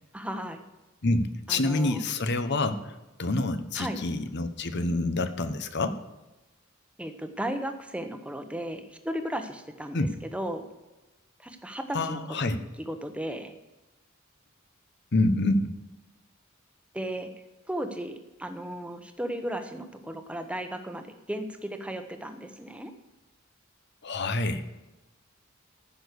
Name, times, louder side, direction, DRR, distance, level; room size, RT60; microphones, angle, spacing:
voice 1, 0.1-0.6 1.5-2.0 3.7-4.0 7.0-10.1 10.3-10.6 11.4-12.6 12.9-13.5 16.9-17.3 17.7-22.9, right 1 dB, 5° right, 7 dB, 1.0 m, -35 dB
voice 2, 1.0-6.0 9.9-10.1 11.9-12.6 15.1-15.7 24.0-24.6, left 2 dB, 55° left, 11 dB, 0.9 m, -27 dB
14.5 x 6.3 x 6.8 m, 1.1 s
head